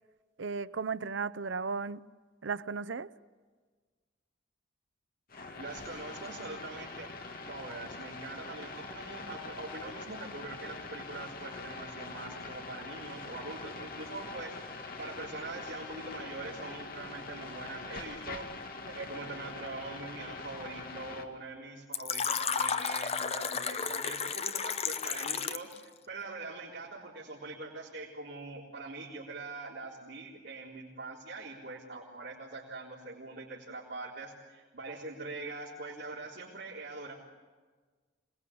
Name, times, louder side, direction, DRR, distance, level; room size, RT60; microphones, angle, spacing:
voice 1, 0.4-2.1 2.4-3.1, right 5 dB, 85° right, 0.7 m, -35 dB
sound 1, 5.3-21.3, left 3 dB, 55° left, 2.2 m, -43 dB
voice 2, 5.6-7.1 7.5-14.5 15.0-37.1, right 3 dB, 70° right, 4.0 m, -43 dB
Fill (with liquid), 21.9-25.8, left 6 dB, 35° left, 0.8 m, -32 dB
26.5 x 20.5 x 8.7 m
head